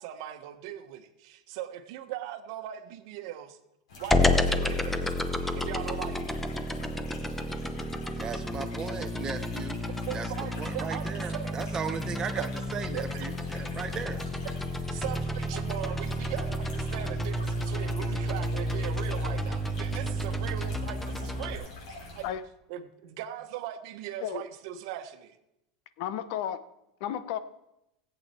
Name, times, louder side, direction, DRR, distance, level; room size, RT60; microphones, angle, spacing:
voice 1, 0.0-3.6 3.9-5.2 5.5-6.2 9.9-11.6 12.4-12.5 12.9-13.3 14.4-14.5 14.9-21.7 22.1-22.3 22.7-25.4, right 11 dB, 60° right, 9 dB, 1.2 m, -39 dB
sound 1, 3.9-22.3, left 2 dB, 80° left, 5.1 m, -46 dB
sound 2, 4.1-21.6, left 1 dB, 5° left, 0.7 m, -31 dB
voice 2, 8.1-9.8 10.1-10.3 10.6-14.2, right 6 dB, 20° right, 8 dB, 1.0 m, -37 dB
voice 3, 26.0-26.6 27.0-27.4, left 10 dB, 60° left, 14 dB, 0.8 m, -32 dB
17.5 x 8.3 x 4.4 m, 0.87 s
supercardioid pair, 150°, 3 cm